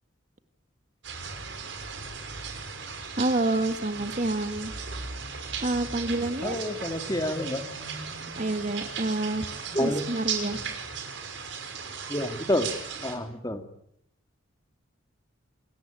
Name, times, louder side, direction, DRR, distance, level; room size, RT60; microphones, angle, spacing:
sound 1, 1.0-13.2, right 5 dB, 60° right, 5.6 m, -36 dB
voice 1, 3.2-4.7 5.6-6.6 8.4-9.5 9.8-10.6, right 2 dB, 35° right, 9 dB, 1.7 m, -28 dB
voice 2, 6.4-7.6 9.7-10.0 12.1-12.7 13.0-13.6, left 1 dB, 20° left, 7 dB, 2.4 m, -28 dB
28.5 x 22.0 x 9.2 m, 0.73 s
head